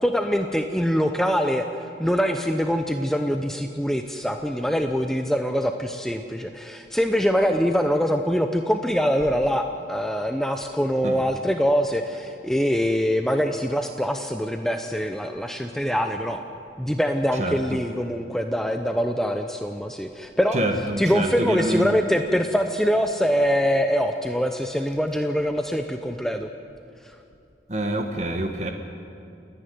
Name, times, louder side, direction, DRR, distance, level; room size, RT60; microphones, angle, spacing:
voice 1, 0.0-16.4 16.8-20.6 21.0-26.5, equal, ahead, 5 dB, 0.6 m, -24 dB
voice 2, 17.4-17.8 20.5-21.9 27.7-28.7, right 1 dB, 40° right, 4 dB, 1.3 m, -26 dB
29.5 x 10.0 x 9.4 m, 2.7 s
head